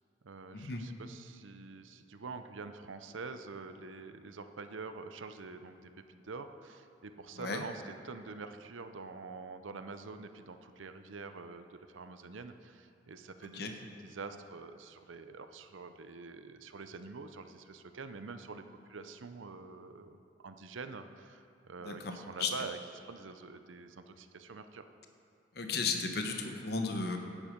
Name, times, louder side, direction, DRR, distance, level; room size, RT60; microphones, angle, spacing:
voice 1, 0.2-18.6 18.9-24.8, right 4 dB, 90° right, 9 dB, 0.7 m, -46 dB
voice 2, 25.6-27.2, left 4 dB, 55° left, 4 dB, 0.9 m, -34 dB
11.5 x 9.9 x 5.2 m, 2.5 s
head